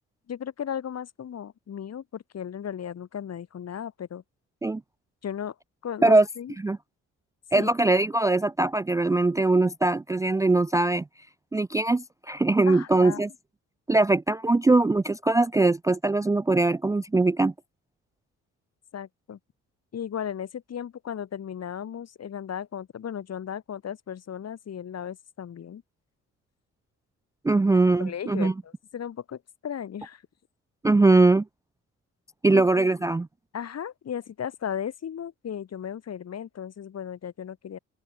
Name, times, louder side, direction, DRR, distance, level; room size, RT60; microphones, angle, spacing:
voice 1, 0.3-4.2 5.2-5.6 5.8-6.5 7.5-7.7 12.7-13.2 18.9-19.4 19.9-25.8 28.0-30.2 32.5-32.9 33.5-37.8, left 8 dB, 55° left, 5.2 m, -35 dB
voice 2, 7.5-11.0 11.5-13.3 13.9-17.5 27.4-28.5 30.8-31.4 32.4-33.3, right 2 dB, 10° right, 0.4 m, -21 dB
open air
cardioid pair, 90°, 30 cm